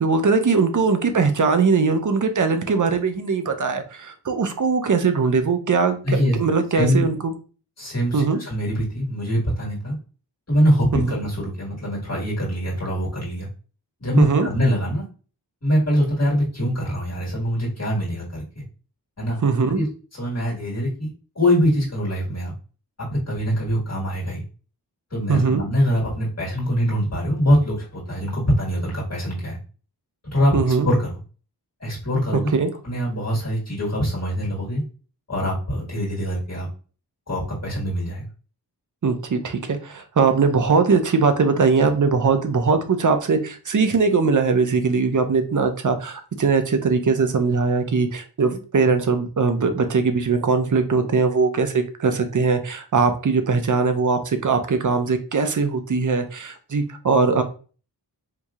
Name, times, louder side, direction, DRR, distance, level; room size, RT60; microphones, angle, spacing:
voice 1, 0.0-7.1 8.1-8.4 11.1-11.2 14.2-14.5 19.4-19.8 25.3-25.6 30.5-30.9 32.5-32.7 39.0-57.4, right 4 dB, 45° right, 7 dB, 0.6 m, -20 dB
voice 2, 6.0-6.4 6.7-7.1 7.8-10.0 10.5-13.5 14.0-15.0 15.6-18.6 19.2-19.4 19.7-19.9 20.1-21.1 21.4-22.5 23.0-24.4 25.1-29.6 30.3-30.6 30.8-31.2 31.8-32.5 32.8-34.8 35.3-36.7 37.3-38.3, equal, 40° left, -5 dB, 1.7 m, -23 dB
4.7 x 2.7 x 2.4 m, 0.37 s
wide cardioid pair, 95°, 41 cm